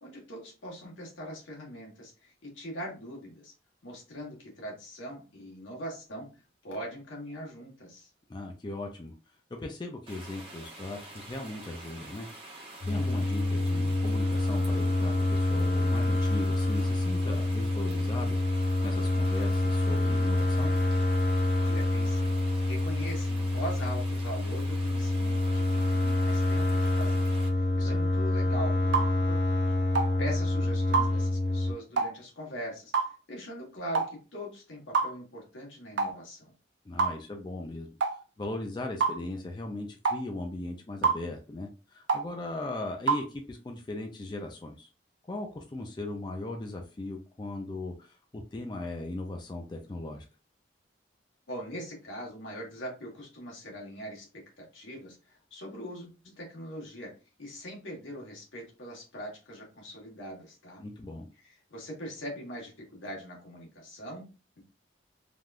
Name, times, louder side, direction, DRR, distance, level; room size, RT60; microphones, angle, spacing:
voice 1, 0.0-3.5 3.8-6.3 6.6-8.1 21.6-22.3 22.7-29.4 29.9-36.5 51.5-57.1 57.4-60.9 61.4-64.3 64.6-64.7, equal, 90° left, -2 dB, 1.3 m, -41 dB
voice 2, 8.3-9.1 9.6-12.3 12.8-20.7 27.8-28.0 36.9-37.9 38.4-44.9 45.3-48.2 48.5-50.2 60.8-61.3, left 2 dB, 25° left, 2 dB, 0.3 m, -38 dB
sound 1, 10.1-27.5, right 2 dB, 30° right, 0.7 m, -47 dB
sound 2, 12.8-31.7, left 1 dB, 70° left, 0.6 m, -27 dB
sound 3, 28.9-29.1 29.9-30.1 30.9-31.1 32.0-32.1 32.9-33.1 33.9-34.1 34.9-35.1 36.0-36.2 37.0-37.2 38.0-38.2 39.0-39.2 40.0-40.2 41.0-41.2 42.1-42.3 43.1-43.3, right 5 dB, 75° right, 0.4 m, -26 dB
3.4 x 2.3 x 2.4 m, 0.32 s
head